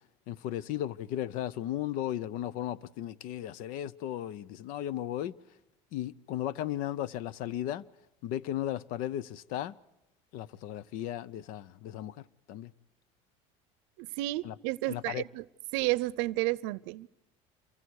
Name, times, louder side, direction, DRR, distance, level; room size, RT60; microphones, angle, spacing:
voice 1, 0.3-5.3 5.9-7.9 8.2-9.8 10.3-12.7 14.4-14.5 14.9-15.2, left 12 dB, 70° left, 0.7 m, -35 dB
voice 2, 14.0-15.4 15.7-17.1, right 19 dB, 85° right, 0.6 m, -31 dB
28.5 x 24.0 x 4.8 m
cardioid pair, 120°, 14 cm